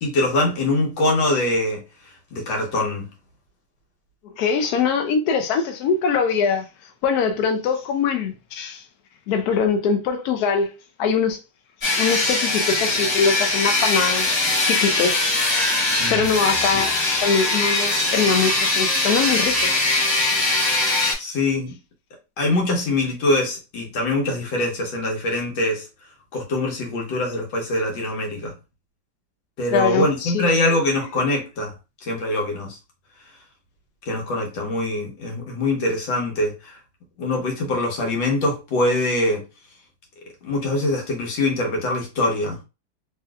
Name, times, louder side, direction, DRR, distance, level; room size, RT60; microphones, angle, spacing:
voice 1, 0.0-1.8 2.3-3.1 16.0-16.2 21.2-21.7 22.4-25.8 26.3-28.5 29.6-31.7 32.0-32.8 34.1-36.8 37.2-39.4 40.4-42.6, left 2 dB, 90° left, 1.8 m, -23 dB
voice 2, 4.4-6.7 7.0-8.8 9.3-10.7 11.0-11.4 12.0-15.3 15.7-19.7 29.7-30.5, left 6 dB, 70° left, 1.0 m, -23 dB
sound 1, 11.8-21.1, left 2 dB, 45° left, 1.3 m, -21 dB
3.2 x 3.0 x 2.3 m
omnidirectional pair, 2.0 m